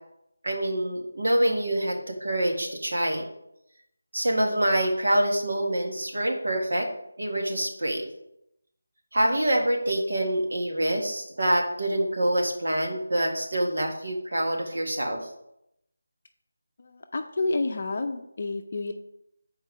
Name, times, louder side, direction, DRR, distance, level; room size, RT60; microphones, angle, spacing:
voice 1, 0.4-3.3 4.1-6.9 7.2-8.1 9.1-15.3, right 1 dB, 75° right, 1 dB, 1.8 m, -26 dB
voice 2, 16.8-18.9, left 2 dB, 40° left, 6 dB, 0.5 m, -29 dB
7.4 x 4.5 x 4.8 m, 0.80 s
figure-of-eight pair, 175°, 0 cm